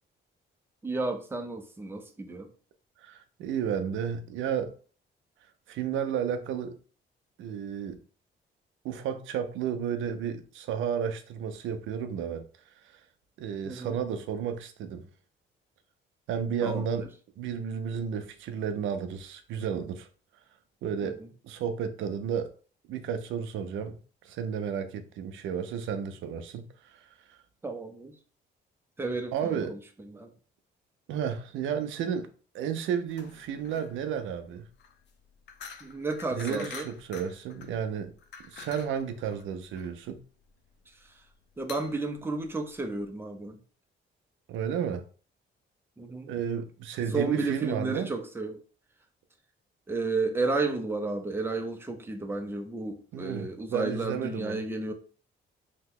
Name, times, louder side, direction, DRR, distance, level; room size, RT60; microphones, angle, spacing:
voice 1, 0.8-2.5 13.6-14.0 16.6-17.1 21.0-21.1 27.6-28.1 29.0-29.8 30.1-30.3 35.8-36.9 41.6-43.6 46.0-46.3 47.0-48.6 49.9-54.9, right 3 dB, 10° right, 0.5 m, -32 dB
voice 2, 3.0-4.7 5.7-6.8 7.4-8.0 8.8-12.5 12.9-13.0 13.4-15.1 16.3-17.1 17.4-20.1 20.8-22.5 22.9-24.0 24.2-27.4 29.3-29.8 31.1-32.3 32.5-34.7 36.3-38.1 38.5-40.2 44.5-45.1 46.3-48.1 53.1-54.6, right 7 dB, 80° right, 0.5 m, -32 dB
sound 1, 33.1-43.1, left 6 dB, 60° left, 0.5 m, -47 dB
2.8 x 2.1 x 3.6 m
cardioid pair, 90°, 20 cm